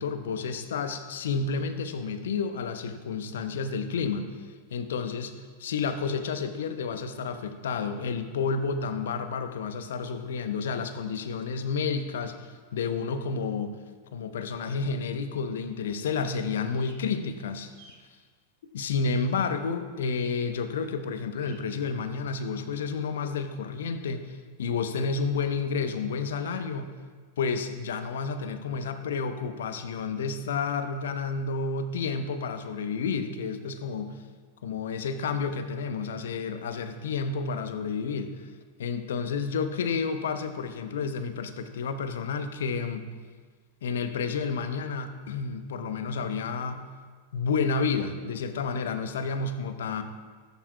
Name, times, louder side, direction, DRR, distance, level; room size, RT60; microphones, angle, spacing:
voice 1, 0.0-4.4 4.7-5.3 5.6-13.8 14.1-17.7 18.7-26.9 27.4-34.2 34.6-38.5 38.8-43.0 43.8-46.8 47.3-50.0, left 5 dB, 60° left, 9 dB, 0.9 m, -30 dB
sound 1, 16.6-17.0 17.5-18.0 20.0-20.3 21.3-21.6, right 3 dB, 45° right, 2.5 m, -56 dB
18.5 x 11.0 x 2.4 m, 1.5 s
figure-of-eight pair, 90°, 0 cm